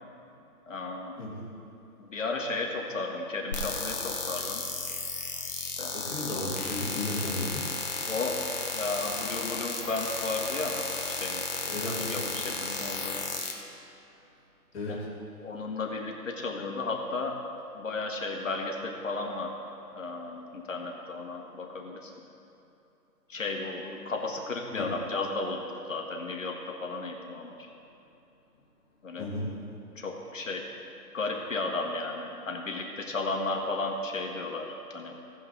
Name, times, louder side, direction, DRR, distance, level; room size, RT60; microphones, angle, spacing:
voice 1, 0.7-1.2 2.0-4.6 5.6-5.9 8.1-8.4 8.7-11.4 11.8-13.2 14.9-15.0 15.4-17.4 17.7-19.5 19.9-22.1 23.3-27.7 29.0-29.3 30.0-30.6 31.1-35.2, left 3 dB, 55° left, 1 dB, 1.2 m, -34 dB
voice 2, 1.2-1.5 5.9-7.6 11.6-12.2 14.7-15.1 24.7-24.9 29.2-29.5, left 2 dB, 5° left, -12 dB, 1.5 m, -34 dB
sound 1, 3.5-13.5, left 3 dB, 30° left, 0.7 m, -34 dB
16.5 x 5.8 x 3.8 m, 3.0 s
hypercardioid pair, 170°, 47 cm